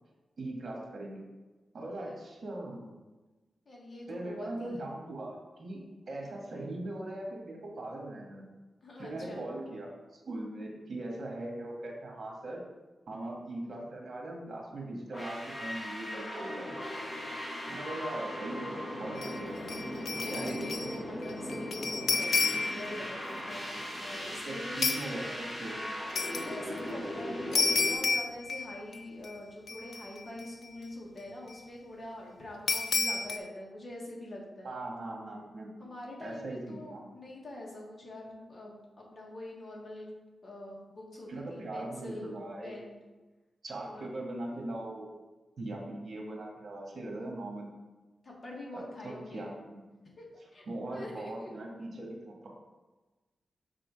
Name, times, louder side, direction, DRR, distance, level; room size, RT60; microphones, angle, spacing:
voice 1, 0.4-1.2 1.7-2.9 4.1-5.8 6.1-8.5 9.0-12.6 13.1-16.7 17.7-19.6 20.3-20.9 24.4-25.8 34.6-35.7 36.2-37.1 41.3-42.7 43.6-45.2 45.6-47.7 48.7-49.8 50.7-52.5, right 1 dB, 55° right, -1 dB, 1.7 m, -40 dB
voice 2, 3.6-4.8 8.8-9.4 20.1-23.7 24.0-24.8 26.3-34.7 35.8-40.1 40.4-42.3 42.6-43.0 43.8-44.0 48.2-49.5 50.2-50.3 50.5-51.5, left 1 dB, 40° left, -2 dB, 1.6 m, -44 dB
sound 1, 15.1-27.9, equal, 15° left, 1.5 m, -38 dB
sound 2, 19.2-19.4 19.7-21.0 21.2-22.9 24.8-25.1 26.2-26.5 27.5-29.0 29.2-29.3 29.7-30.4 32.7-33.4, left 4 dB, 70° left, 0.5 m, -30 dB
6.7 x 3.8 x 4.8 m, 1.2 s
wide cardioid pair, 115°, 0 cm